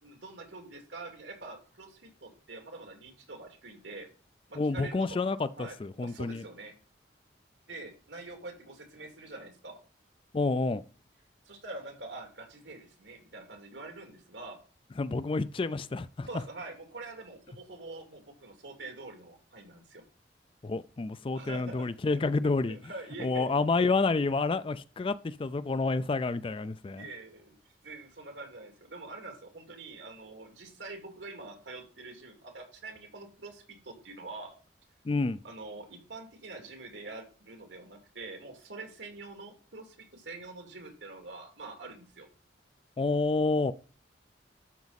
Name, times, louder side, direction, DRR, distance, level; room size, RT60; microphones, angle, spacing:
voice 1, 0.0-4.1 4.5-5.2 5.6-6.7 7.7-9.8 11.5-14.6 16.3-20.0 21.3-21.9 22.1-22.3 22.7-23.7 27.0-27.6 27.8-34.5 35.4-42.3, right 3 dB, 90° right, 2.5 m, -45 dB
voice 2, 4.6-6.4 10.3-10.8 15.0-16.3 20.6-22.8 23.2-27.0 35.0-35.4 43.0-43.7, left 3 dB, 30° left, 0.4 m, -29 dB
12.0 x 5.2 x 4.1 m
head